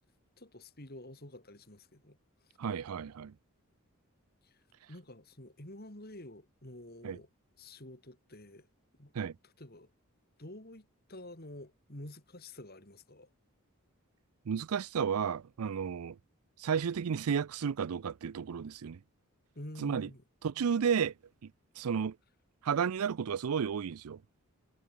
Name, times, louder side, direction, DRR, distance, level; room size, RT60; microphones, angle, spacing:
voice 1, 0.4-2.2 4.4-4.6 4.9-7.3 7.6-8.7 9.0-9.1 9.4-9.9 10.4-13.3 19.5-20.2, left 1 dB, 45° left, 3.4 m, -49 dB
voice 2, 2.6-3.3 7.0-7.2 9.1-9.3 14.5-16.2 16.6-19.0 19.8-20.1 20.4-21.1 21.4-21.5 21.8-22.1 22.6-24.2, right 7 dB, 80° right, 0.4 m, -32 dB
head